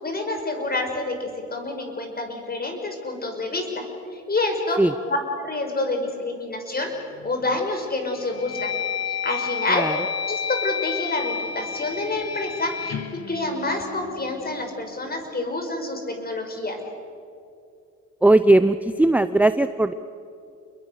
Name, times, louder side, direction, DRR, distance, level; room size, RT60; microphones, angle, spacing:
voice 1, 0.0-3.8 4.1-4.8 5.1-6.9 7.2-8.7 9.1-9.9 10.3-13.0 13.3-16.8, left 2 dB, 30° left, 4 dB, 5.5 m, -28 dB
sound 1, 7.2-7.6 8.1-14.3, left 7 dB, 60° left, 1.4 m, -31 dB
voice 2, 18.2-19.9, right 2 dB, 5° right, 11 dB, 0.6 m, -18 dB
29.0 x 22.5 x 6.6 m, 2.5 s
cardioid pair, 90°, 30 cm